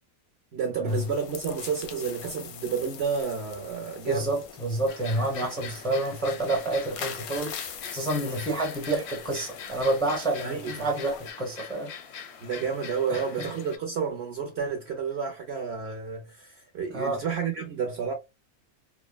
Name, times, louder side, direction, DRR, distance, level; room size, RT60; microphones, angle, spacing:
voice 1, 0.5-4.3 5.3-5.5 8.2-8.4 10.4-10.9 12.4-18.1, right 6 dB, 60° right, 0.7 m, -31 dB
sound 1, 0.9-11.3, left 7 dB, 90° left, 1.1 m, -43 dB
voice 2, 4.1-11.9 13.1-13.4 16.9-17.2, right 2 dB, 5° left, 0.7 m, -29 dB
sound 2, 4.9-13.8, left 7 dB, 65° left, 0.7 m, -42 dB
3.1 x 2.1 x 2.2 m
omnidirectional pair, 1.5 m